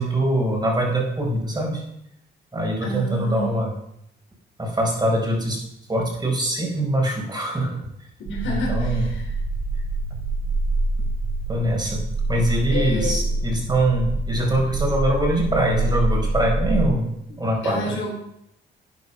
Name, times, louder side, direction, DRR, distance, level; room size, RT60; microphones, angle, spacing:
voice 1, 0.0-1.8 2.5-3.7 4.6-5.6 5.9-7.8 8.4-9.0 11.5-17.1 17.4-18.0, right 1 dB, 20° right, 0 dB, 4.9 m, -23 dB
voice 2, 2.8-3.5 8.2-9.3 12.7-13.4 17.6-18.3, left 1 dB, 75° left, 0 dB, 4.1 m, -30 dB
sound 1, 8.3-16.9, right 2 dB, 70° right, 1.9 m, -25 dB
12.0 x 9.4 x 5.5 m, 0.77 s
cardioid pair, 90°, 20 cm